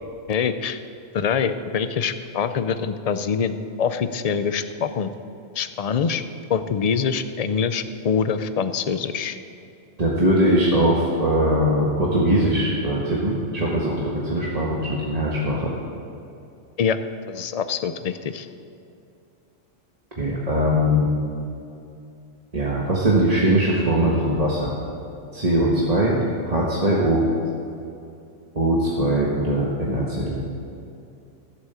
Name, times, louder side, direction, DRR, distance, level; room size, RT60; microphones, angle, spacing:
voice 1, 0.3-0.8 1.1-5.1 5.6-6.2 6.5-9.4 16.8-17.0 17.3-18.5, left 6 dB, 45° left, 10 dB, 0.5 m, -24 dB
voice 2, 10.0-15.7 20.2-21.1 22.5-24.7 25.3-27.2 28.5-30.4, right 1 dB, 30° right, -5 dB, 1.5 m, -21 dB
14.5 x 8.1 x 6.9 m, 2.6 s
omnidirectional pair, 1.2 m